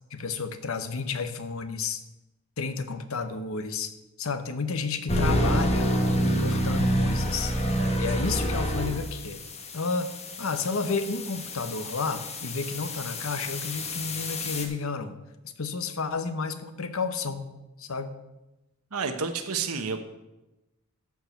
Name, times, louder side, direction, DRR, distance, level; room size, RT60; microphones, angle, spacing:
voice 1, 0.1-2.0 2.6-5.9 6.2-7.5 8.0-9.4 9.7-10.1 10.4-15.2 15.6-17.5 17.8-18.1, left 4 dB, 70° left, 10 dB, 0.9 m, -31 dB
sound 1, 5.1-14.6, equal, 30° left, 1.3 m, -28 dB
voice 2, 18.9-20.0, right 5 dB, 85° right, 7 dB, 1.1 m, -30 dB
13.0 x 4.8 x 6.8 m, 0.98 s
head